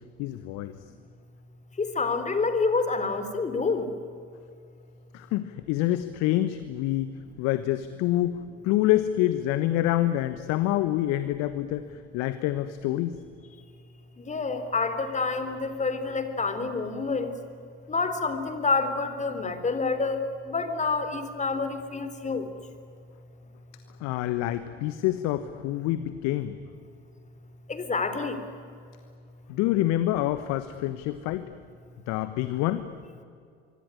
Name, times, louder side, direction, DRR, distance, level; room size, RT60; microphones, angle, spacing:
voice 1, 0.2-0.7 5.1-7.1 7.4-13.2 24.0-26.6 29.5-31.5 32.1-32.9, left 14 dB, 55° left, 12 dB, 1.4 m, -27 dB
voice 2, 1.8-3.9 14.3-17.3 17.9-22.4 27.7-28.4, left 4 dB, 20° left, 10 dB, 3.6 m, -28 dB
24.5 x 24.5 x 9.9 m, 2.3 s
figure-of-eight pair, 65°, 32 cm